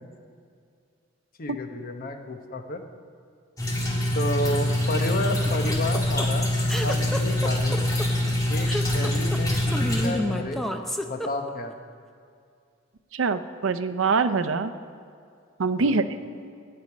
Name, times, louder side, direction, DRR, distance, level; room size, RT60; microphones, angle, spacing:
voice 1, 1.4-2.8 4.1-6.5 6.8-7.8 8.5-10.6 11.0-11.7 15.8-16.0, left 1 dB, 50° left, 5 dB, 1.0 m, -31 dB
sound 1, 3.6-10.1, left 1 dB, 20° left, 2.3 m, -24 dB
sound 2, 5.5-11.7, equal, ahead, 0.6 m, -30 dB
voice 2, 13.1-14.7 15.6-16.0, right 4 dB, 85° right, 10 dB, 0.6 m, -24 dB
14.5 x 5.3 x 9.4 m, 2.3 s
head